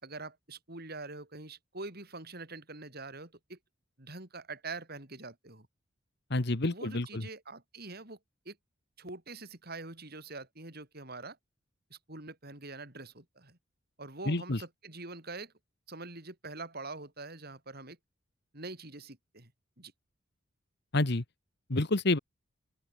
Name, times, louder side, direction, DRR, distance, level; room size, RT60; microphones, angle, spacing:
voice 1, 0.0-3.6 4.0-5.7 6.6-8.2 8.5-8.6 9.0-11.4 11.9-13.6 14.0-15.5 15.9-18.0 18.5-19.5 19.8-19.9, right 3 dB, 50° right, 5.7 m, -44 dB
voice 2, 6.3-7.3 14.3-14.6 20.9-21.2 21.7-22.2, left 2 dB, 55° left, 1.4 m, -28 dB
open air
head